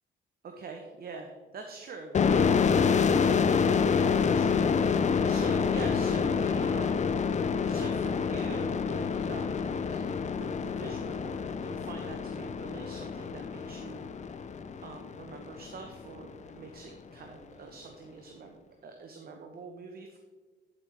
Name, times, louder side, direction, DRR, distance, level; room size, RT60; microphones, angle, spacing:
voice 1, 0.4-2.6 3.9-7.3 7.6-9.6 9.9-10.0 10.4-14.1 14.8-18.6 18.8-20.2, right 4 dB, 50° right, 4 dB, 0.8 m, -45 dB
sound 1, 2.1-15.6, left 6 dB, 35° left, 0.5 m, -27 dB
11.0 x 5.1 x 3.3 m, 1.4 s
cardioid pair, 90°, 20 cm